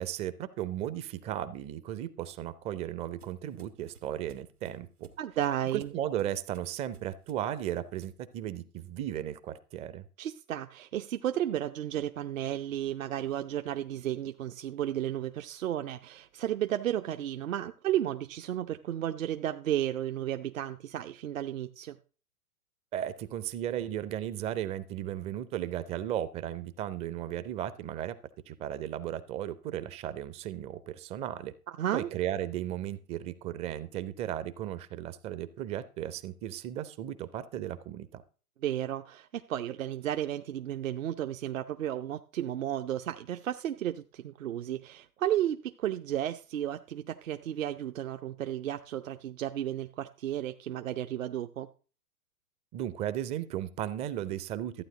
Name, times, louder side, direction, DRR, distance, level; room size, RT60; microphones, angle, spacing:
voice 1, 0.0-5.1 5.7-10.0 22.9-28.2 28.5-31.5 31.9-38.2 52.7-54.8, right 11 dB, 15° right, 0.5 m, -35 dB
sound 1, 2.3-8.3, right 6 dB, 80° right, 1.9 m, -58 dB
voice 2, 5.2-5.9 10.2-22.0 31.7-32.1 38.6-51.7, right 11 dB, 60° right, 0.7 m, -33 dB
14.0 x 9.3 x 3.8 m
figure-of-eight pair, 110°, 44 cm